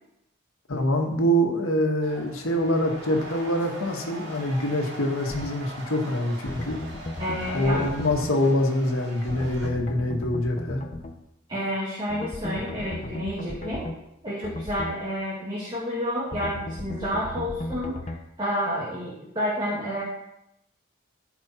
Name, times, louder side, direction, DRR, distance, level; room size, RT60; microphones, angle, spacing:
voice 1, 0.7-6.8 7.5-10.8, equal, 90° left, 2 dB, 1.8 m, -25 dB
sound 1, 2.0-9.7, right 1 dB, 55° right, 2.4 m, -41 dB
sound 2, 5.3-5.5 6.5-8.4 9.3-11.1 12.1-14.0 14.4-15.0 16.3-18.2, left 1 dB, 35° left, 0.7 m, -36 dB
voice 2, 7.2-7.9 11.5-13.9 14.2-18.1 18.4-20.0, equal, 20° right, -7 dB, 2.3 m, -30 dB
14.0 x 5.5 x 4.4 m, 0.84 s
head